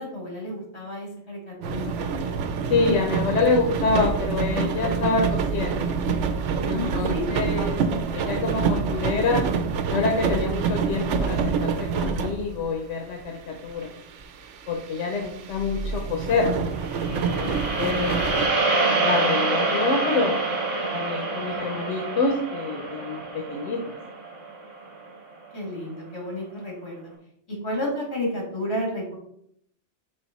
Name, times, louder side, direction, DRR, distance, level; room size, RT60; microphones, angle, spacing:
voice 1, 0.0-2.4 6.7-7.7 17.4-17.9 25.5-27.1 27.5-29.1, left 1 dB, 65° left, -2 dB, 2.7 m, -32 dB
sound 1, 1.6-12.8 13.2-13.3 13.7-18.5, right 5 dB, 80° right, 1.0 m, -27 dB
voice 2, 2.7-5.9 6.6-7.8 8.1-9.4 9.9-13.9 14.7-16.5 17.1-17.5 17.7-18.2 18.9-20.4 20.9-23.8, left 4 dB, 90° left, 2 dB, 1.1 m, -26 dB
sound 2, 16.7-25.1, right 3 dB, 55° right, 1.6 m, -26 dB
5.4 x 4.5 x 4.1 m, 0.71 s
omnidirectional pair, 1.2 m